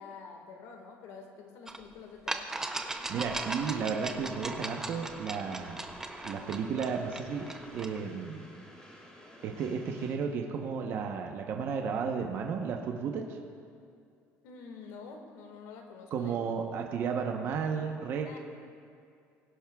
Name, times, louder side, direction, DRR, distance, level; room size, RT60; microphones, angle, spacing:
voice 1, 0.0-2.5 14.4-16.4 18.2-18.4, left 5 dB, 80° left, 3 dB, 1.7 m, -47 dB
sound 1, 1.7-1.8 2.3-8.0, right 2 dB, 10° right, 0.6 m, -38 dB
Train, 2.5-10.1, left 1 dB, 15° left, 1.9 m, -52 dB
voice 2, 3.1-5.8 6.2-8.4 9.4-13.4 16.1-18.3, right 6 dB, 50° right, 2 dB, 0.9 m, -33 dB
21.5 x 11.0 x 2.3 m, 2.3 s
cardioid pair, 160°, 5 cm